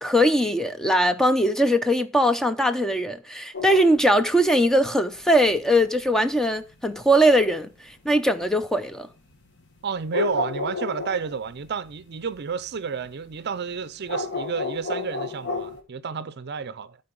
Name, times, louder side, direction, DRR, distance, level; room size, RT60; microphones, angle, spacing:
voice 1, 0.0-7.7 8.1-9.1, equal, 5° left, 0.6 m, -20 dB
sound 1, 3.5-4.7 5.2-8.6 9.0-13.1 13.5-15.8, left 3 dB, 60° left, 1.6 m, -32 dB
voice 2, 9.8-17.0, right 6 dB, 55° right, 0.5 m, -31 dB
12.5 x 4.5 x 4.6 m
head